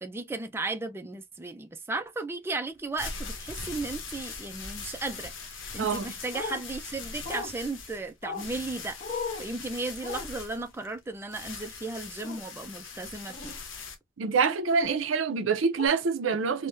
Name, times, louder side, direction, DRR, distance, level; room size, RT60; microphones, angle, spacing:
voice 1, 0.0-9.0 9.4-13.5, right 3 dB, 10° right, 0.3 m, -35 dB
sound 1, 2.8-14.0, left 4 dB, 75° left, 0.8 m, -41 dB
voice 2, 5.8-6.1 14.2-16.7, right 5 dB, 85° right, 0.5 m, -26 dB
sound 2, 6.3-6.6 7.2-7.5 8.2-8.5 9.0-9.4 10.0-10.2 12.2-12.4 13.3-13.6 14.8-15.0 15.8-15.9, left 4 dB, 35° left, 1.0 m, -36 dB
3.5 x 2.1 x 2.6 m
head